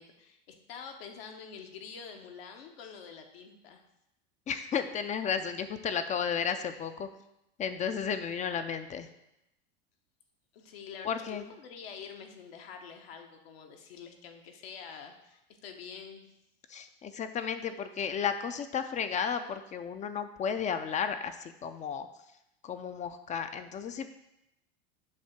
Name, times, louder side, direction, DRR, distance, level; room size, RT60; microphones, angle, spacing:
voice 1, 0.0-3.8 10.5-16.2, left 6 dB, 70° left, 4 dB, 1.1 m, -47 dB
voice 2, 4.5-7.1 7.6-9.1 11.0-11.4 16.7-22.1 22.6-24.1, left 7 dB, 25° left, 9 dB, 0.4 m, -33 dB
7.3 x 2.7 x 5.9 m, 0.84 s
hypercardioid pair, 100°, 31 cm